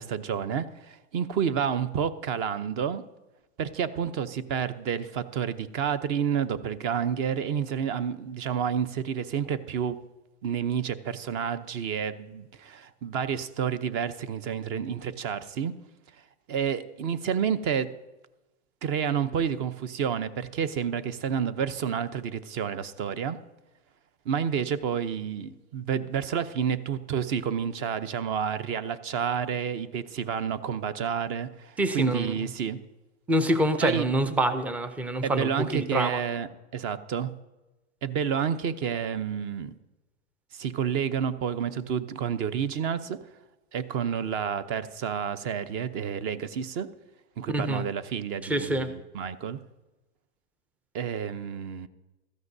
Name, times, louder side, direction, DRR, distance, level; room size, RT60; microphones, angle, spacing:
voice 1, 0.0-3.0 3.6-10.0 10.4-15.7 16.5-17.9 18.8-23.4 24.2-32.8 33.8-34.0 35.2-37.3 38.0-39.7 40.5-43.2 43.7-46.9 47.4-49.6 50.9-51.9, right 7 dB, 35° right, 14 dB, 0.7 m, -29 dB
voice 2, 31.8-32.3 33.3-36.2 47.5-47.8 48.4-48.9, right 1 dB, 5° right, 11 dB, 0.4 m, -26 dB
16.0 x 13.5 x 2.7 m, 1.1 s
hypercardioid pair, 130°, 36 cm